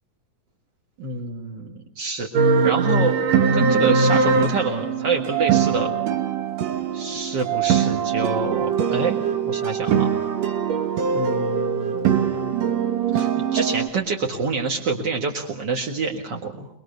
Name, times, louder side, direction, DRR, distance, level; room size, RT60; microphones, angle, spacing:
voice 1, 1.0-3.2 3.5-5.9 6.9-9.2 9.4-10.1 11.1-12.6 13.1-16.7, right 4 dB, 45° right, 2 dB, 1.6 m, -27 dB
sound 1, 2.3-13.9, right 6 dB, 60° right, 1.9 m, -22 dB
23.5 x 22.5 x 6.7 m, 0.79 s
omnidirectional pair, 4.3 m